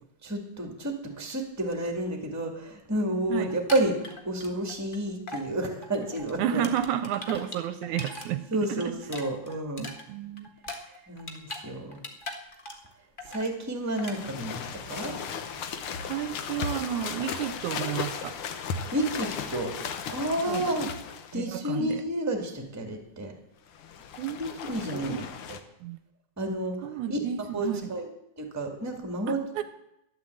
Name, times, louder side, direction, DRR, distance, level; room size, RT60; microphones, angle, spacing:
voice 1, 0.2-6.6 8.5-9.9 11.1-12.0 13.3-15.1 18.9-19.7 20.1-20.9 21.3-23.3 24.4-25.6 26.4-26.8 27.1-28.1 28.4-29.6, right 1 dB, 5° right, 1.5 m, -30 dB
sound 1, 3.5-5.0 5.3-5.5 5.8-8.3 8.6-11.7 11.9-12.9 13.2-13.5 14.0-14.2, left 2 dB, 85° left, 0.4 m, -40 dB
voice 2, 6.4-8.9 9.8-10.5 10.9-11.0 16.1-18.4 19.6-19.7 20.4-20.7 21.3-22.0 24.2-24.5 24.9-25.3 25.8-26.0 26.8-27.8 29.3-29.6, right 10 dB, 80° right, 2.0 m, -32 dB
sound 2, 13.9-21.4 23.7-25.6, left 6 dB, 65° left, 1.4 m, -36 dB
13.0 x 11.0 x 7.8 m
omnidirectional pair, 3.6 m